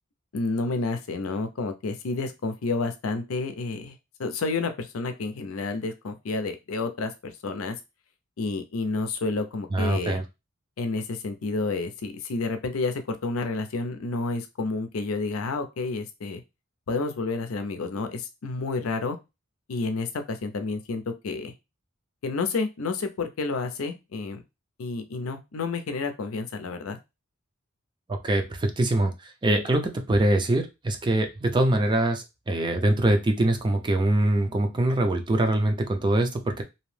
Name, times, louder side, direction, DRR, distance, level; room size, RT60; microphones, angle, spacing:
voice 1, 0.3-7.8 8.4-10.2 10.8-16.4 16.9-19.2 19.7-21.5 22.2-24.4 24.8-27.0, left 3 dB, 80° left, 7 dB, 0.5 m, -30 dB
voice 2, 9.7-10.2 28.1-36.6, right 1 dB, 20° right, 5 dB, 0.4 m, -24 dB
2.7 x 2.0 x 3.1 m, 0.24 s
head